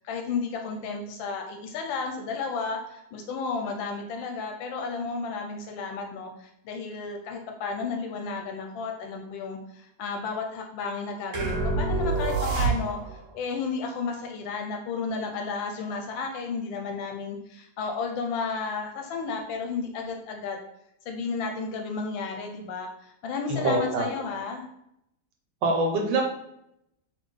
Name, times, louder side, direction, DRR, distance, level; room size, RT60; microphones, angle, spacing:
voice 1, 0.0-13.0 13.3-20.6 21.1-24.7, left 4 dB, 85° left, 3 dB, 1.3 m, -33 dB
sound 1, 11.3-13.2, right 3 dB, 55° right, 1.0 m, -26 dB
voice 2, 23.5-24.1 25.6-26.2, right 2 dB, 70° right, 1 dB, 1.3 m, -24 dB
4.1 x 3.2 x 3.2 m, 0.79 s
omnidirectional pair, 2.1 m